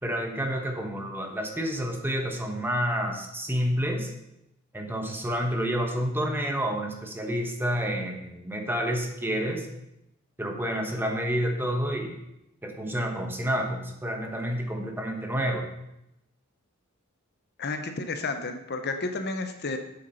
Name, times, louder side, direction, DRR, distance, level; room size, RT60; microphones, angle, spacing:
voice 1, 0.0-4.1 4.7-9.7 10.4-12.2 12.6-15.7, equal, 10° right, 2 dB, 1.2 m, -29 dB
voice 2, 17.6-19.8, left 3 dB, 50° left, 7 dB, 0.8 m, -31 dB
8.1 x 7.9 x 5.6 m, 0.85 s
head